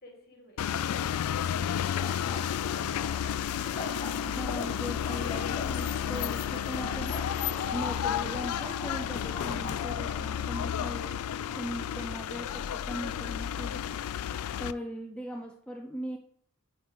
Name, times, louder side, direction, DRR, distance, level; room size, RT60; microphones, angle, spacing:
voice 1, 0.0-0.6, left 1 dB, 45° left, 0 dB, 2.0 m, -55 dB
sound 1, 0.6-14.7, left 9 dB, 80° left, 0.3 m, -32 dB
sound 2, 1.9-10.4, left 2 dB, 25° left, 1.0 m, -43 dB
voice 2, 4.3-11.2 11.5-13.8 14.2-16.2, equal, 5° left, 2 dB, 0.4 m, -39 dB
8.7 x 4.4 x 3.8 m, 0.64 s
head